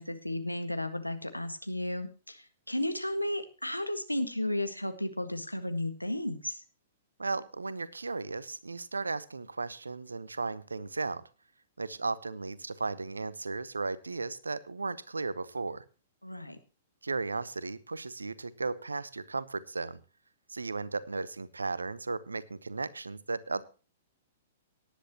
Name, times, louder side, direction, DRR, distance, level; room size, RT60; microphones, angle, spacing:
voice 1, 0.0-6.6 16.2-16.6, left 1 dB, 90° left, 8 dB, 1.6 m, -34 dB
voice 2, 7.2-11.2 11.8-15.8 17.0-20.0 20.5-23.6, right 3 dB, 75° right, 18 dB, 0.9 m, -35 dB
18.0 x 10.5 x 2.9 m, 0.34 s
figure-of-eight pair, 110°, 0 cm